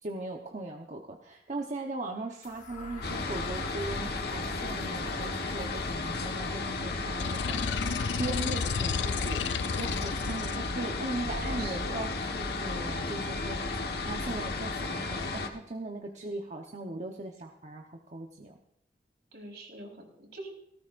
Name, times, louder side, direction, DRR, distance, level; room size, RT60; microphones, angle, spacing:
voice 1, 0.0-9.4 9.7-18.6, right 2 dB, 45° right, 1 dB, 1.1 m, -39 dB
sound 1, 2.4-10.4, left 2 dB, 45° left, 1.6 m, -48 dB
sound 2, 3.0-15.5, left 3 dB, 65° left, 1.4 m, -34 dB
hungry dragon, 7.2-10.6, left 6 dB, 80° left, 0.5 m, -32 dB
voice 2, 11.3-12.0 19.3-20.5, right 2 dB, 70° right, 0 dB, 4.4 m, -43 dB
18.0 x 18.0 x 2.6 m, 0.78 s
head